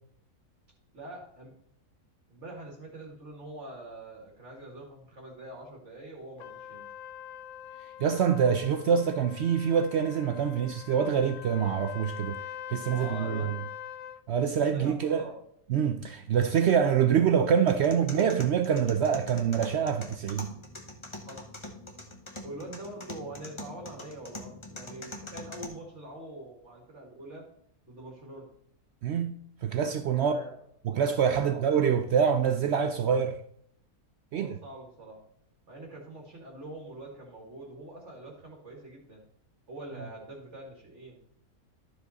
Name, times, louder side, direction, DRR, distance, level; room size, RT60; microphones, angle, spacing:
voice 1, 0.9-1.6 2.3-6.9 12.9-13.5 14.7-15.3 21.3-21.5 22.4-27.4 27.8-28.5 30.1-30.5 31.3-31.6 34.3-35.2 35.7-39.2 39.7-41.2, right 1 dB, 50° right, 2.0 m, -44 dB
Trumpet, 6.4-14.2, left 10 dB, 75° left, 1.0 m, -43 dB
voice 2, 8.0-12.4 12.7-13.6 14.3-15.3 15.7-20.5 29.0-29.4 29.6-30.4 30.8-33.4 34.3-34.6, right 7 dB, 70° right, 0.6 m, -25 dB
sound 1, 17.7-25.7, left 2 dB, 20° left, 1.0 m, -44 dB
12.5 x 5.2 x 4.0 m
omnidirectional pair, 1.6 m